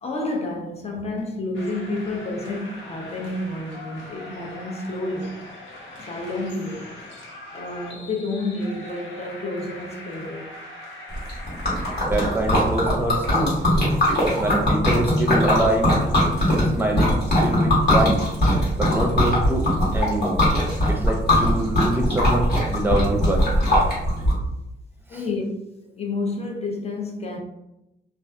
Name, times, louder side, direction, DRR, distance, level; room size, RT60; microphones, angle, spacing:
voice 1, 0.0-5.4 6.1-6.9 7.5-10.5 25.1-25.4 25.9-27.4, left 2 dB, 35° left, 0.6 m, -30 dB
sound 1, 1.5-12.0, left 1 dB, 85° left, 0.6 m, -41 dB
Liquid, 11.1-24.3, left 1 dB, 60° left, 1.2 m, -20 dB
voice 2, 12.0-13.5 14.4-15.9 16.5-18.2 18.8-19.7 19.9-20.4 20.9-23.4 25.1-25.2, right 1 dB, 10° right, 0.6 m, -25 dB
2.5 x 2.4 x 2.2 m
cardioid pair, 85°, 19 cm